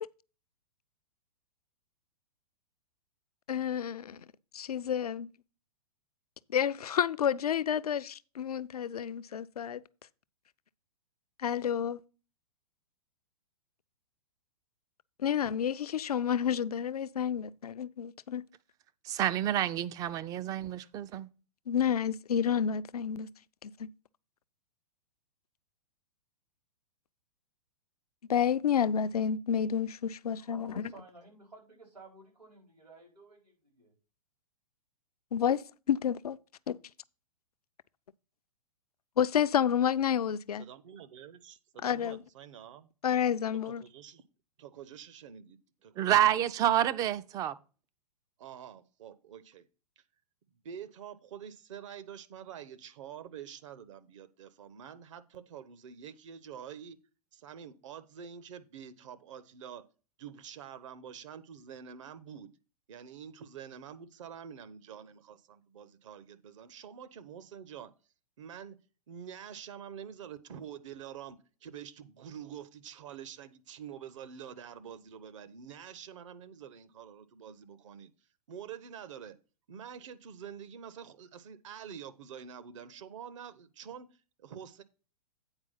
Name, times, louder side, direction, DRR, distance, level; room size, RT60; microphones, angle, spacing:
voice 1, 3.5-4.2 4.5-5.3 6.5-9.8 11.4-12.0 15.2-18.5 21.7-23.3 23.6-23.9 28.3-30.9 35.3-36.4 36.7-36.8 39.2-40.6 41.8-42.2 43.0-43.8, left 8 dB, 70° left, 0.5 m, -30 dB
voice 2, 19.1-21.3 46.0-47.6, right 11 dB, 20° right, 0.4 m, -28 dB
voice 3, 30.4-33.9, right 2 dB, 85° right, 4.3 m, -54 dB
voice 4, 40.6-42.9 43.7-44.2 44.6-46.1 48.4-49.6 50.0-50.1 50.6-57.0 57.3-59.8 60.2-62.5 62.9-67.9 68.4-68.8 69.1-78.1 78.5-79.4 79.7-84.8, right 8 dB, 50° right, 0.8 m, -47 dB
8.9 x 4.7 x 5.5 m
figure-of-eight pair, 110°, 20 cm